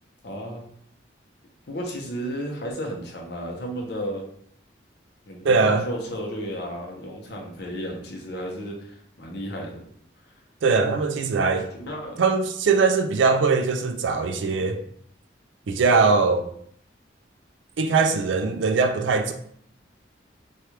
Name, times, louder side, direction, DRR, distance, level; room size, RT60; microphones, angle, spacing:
voice 1, 0.2-0.6 1.7-4.2 5.3-9.8 11.7-12.2, equal, 60° left, 0.7 m, -33 dB
voice 2, 5.4-5.9 10.6-11.7 12.2-14.8 15.7-16.5 17.8-19.3, right 4 dB, 80° right, 0.4 m, -21 dB
3.2 x 2.3 x 2.9 m
head